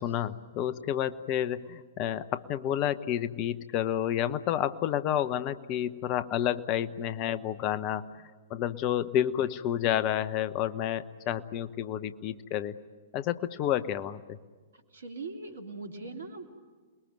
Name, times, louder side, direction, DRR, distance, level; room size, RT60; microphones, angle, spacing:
voice 1, 0.0-8.1 8.5-12.7 13.1-14.4, left 11 dB, 35° left, 14 dB, 1.0 m, -30 dB
voice 2, 14.9-16.5, right 3 dB, 70° right, 5 dB, 3.2 m, -40 dB
28.5 x 21.5 x 9.3 m, 1.4 s
figure-of-eight pair, 105°, 0 cm